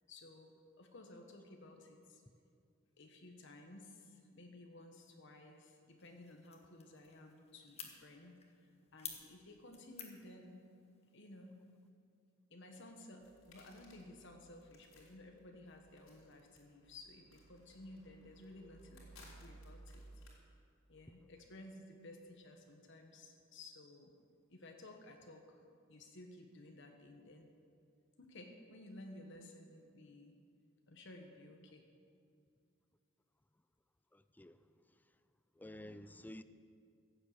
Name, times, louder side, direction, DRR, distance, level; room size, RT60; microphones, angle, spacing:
voice 1, 0.1-2.2 3.0-8.4 8.9-10.6 11.1-11.6 12.5-20.0 20.9-24.1 24.5-25.6 25.9-27.5 28.2-30.4 30.9-31.9 35.8-36.1, left 2 dB, 65° left, 3 dB, 1.4 m, -55 dB
sound 1, 6.0-11.9, left 7 dB, 30° left, 1.5 m, -54 dB
sound 2, 13.2-20.3, right 1 dB, 90° left, 3.4 m, -60 dB
voice 2, 34.1-34.6 35.6-36.4, left 1 dB, 10° left, 12 dB, 0.4 m, -51 dB
15.0 x 7.7 x 8.3 m, 2.3 s
head